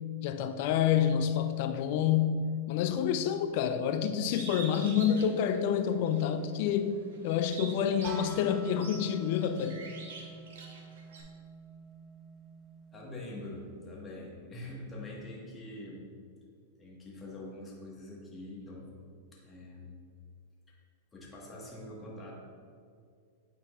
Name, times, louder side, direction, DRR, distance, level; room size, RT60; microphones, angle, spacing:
voice 1, 0.0-7.0 7.2-9.8, left 8 dB, 55° left, 0.4 m, -28 dB
Bird, 4.3-6.3 6.7-11.2, right 4 dB, 75° right, 1.0 m, -46 dB
sound 1, 8.0-13.8, right 3 dB, 35° right, 0.6 m, -47 dB
voice 2, 12.9-16.0 16.8-19.0 19.3-20.0 20.7-20.8 21.1-22.3, left 1 dB, 20° left, 1.5 m, -44 dB
8.8 x 4.5 x 2.4 m
hypercardioid pair, 110°, 0 cm